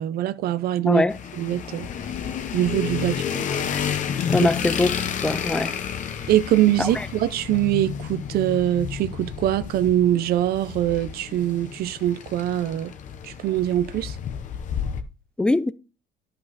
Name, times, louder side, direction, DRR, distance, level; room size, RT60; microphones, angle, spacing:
voice 1, 0.0-1.0 1.4-1.9 2.5-3.5 4.4-4.5 6.3-12.9 13.2-14.2, right 13 dB, 60° right, 0.6 m, -23 dB
voice 2, 0.9-1.2 4.3-5.0 5.2-5.8 6.8-7.1 15.4-15.7, left 2 dB, 5° left, 0.4 m, -22 dB
sound 1, 1.1-15.0, left 8 dB, 45° left, 0.9 m, -31 dB
11.5 x 5.5 x 4.1 m
cardioid pair, 140°, 18 cm